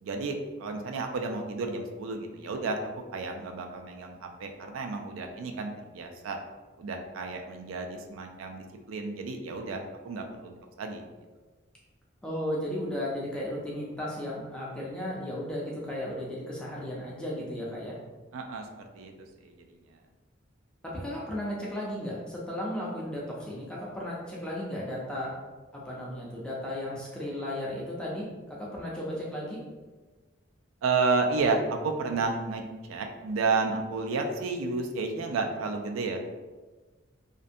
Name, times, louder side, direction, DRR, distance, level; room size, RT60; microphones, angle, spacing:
voice 1, 0.0-6.4 6.8-11.0 18.3-19.1 19.4-19.7 30.8-36.2, right 4 dB, 90° right, 4 dB, 0.3 m, -31 dB
voice 2, 12.2-17.9 20.8-25.3 25.9-29.6, left 1 dB, 5° left, -6 dB, 0.4 m, -35 dB
2.5 x 2.1 x 2.5 m, 1.3 s
head